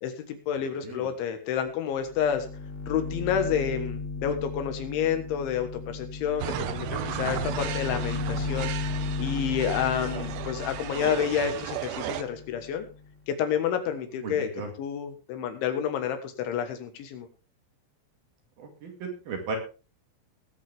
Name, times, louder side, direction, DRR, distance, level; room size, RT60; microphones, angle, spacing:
voice 1, 0.0-2.5 2.9-8.7 9.2-12.9 13.3-14.5 14.8-17.3, left 8 dB, 75° left, 7 dB, 3.7 m, -29 dB
sound 1, 2.0-13.1, left 4 dB, 15° left, 3.0 m, -35 dB
sound 2, 6.4-12.2, right 12 dB, 80° right, 2.2 m, -35 dB
voice 2, 14.2-14.7 18.6-19.6, right 4 dB, 55° right, 3 dB, 3.7 m, -35 dB
19.5 x 8.4 x 3.5 m, 0.33 s
omnidirectional pair, 5.6 m